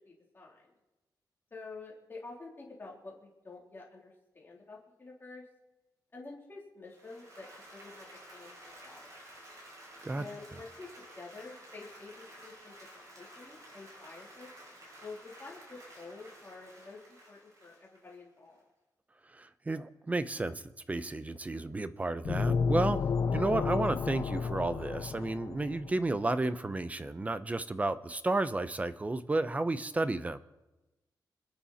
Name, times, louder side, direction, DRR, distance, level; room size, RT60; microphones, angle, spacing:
voice 1, 0.1-0.7 1.5-5.4 6.1-9.2 10.1-10.9 11.2-12.8 13.1-14.5 15.0-17.0 17.3-18.6 23.3-23.5, left 3 dB, 30° left, -3 dB, 3.6 m, -49 dB
Applause, 6.9-18.6, right 1 dB, 50° right, 6.6 m, -53 dB
voice 2, 19.3-20.6 20.9-23.0 23.3-30.4, right 2 dB, 20° right, 13 dB, 0.7 m, -32 dB
sound 1, 22.2-26.0, left 5 dB, 55° left, 0.6 m, -31 dB
27.0 x 10.0 x 4.3 m, 1.0 s
wide cardioid pair, 135°, 8 cm